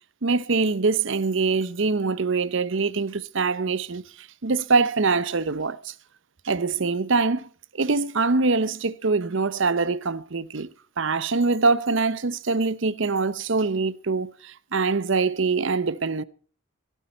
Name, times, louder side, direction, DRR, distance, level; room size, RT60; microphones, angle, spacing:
voice 1, 0.2-5.9 6.4-7.5 7.7-10.7 11.0-16.2, right 4 dB, 65° right, 0.8 m, -24 dB
16.5 x 12.0 x 4.2 m
head